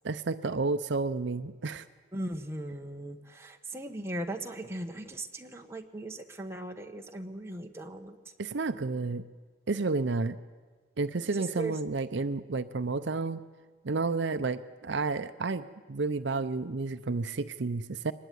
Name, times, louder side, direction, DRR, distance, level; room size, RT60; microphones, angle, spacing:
voice 1, 0.0-1.8 8.4-9.2 9.7-10.4 11.0-13.4 13.8-18.1, right 3 dB, 60° right, 10 dB, 0.6 m, -31 dB
voice 2, 2.1-8.2 11.3-11.8, right 1 dB, 15° right, 3 dB, 1.3 m, -38 dB
23.5 x 20.0 x 9.3 m, 1.5 s
head